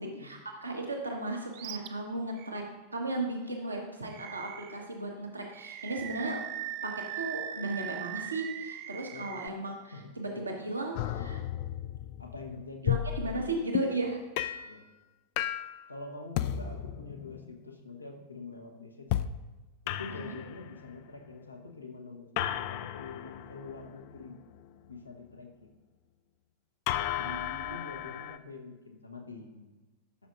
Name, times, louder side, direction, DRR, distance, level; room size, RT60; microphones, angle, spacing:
voice 1, 0.2-2.6 2.9-6.4 6.8-6.9 7.2-11.4 12.8-14.2 20.0-20.3 27.2-27.9, right 2 dB, 80° right, 1 dB, 1.4 m, -36 dB
Animal, 1.5-1.9 2.4-2.5 4.1-4.9 5.5-9.5, right 11 dB, 40° right, 0.4 m, -40 dB
voice 2, 9.9-10.5 12.2-13.0 14.0-14.1 14.7-14.8 15.9-19.1 19.8-24.4 24.9-25.7 27.6-29.7, left 3 dB, 85° left, 2 dB, 1.0 m, -45 dB
sound 1, 11.0-14.0 14.4-14.7 15.4-15.8 16.4-17.6 19.1-19.5 19.9-21.0 22.4-24.7 26.9-28.4, left 12 dB, 45° left, 0.3 m, -34 dB
12.5 x 6.1 x 2.5 m, 1.2 s
figure-of-eight pair, 90°, 0 cm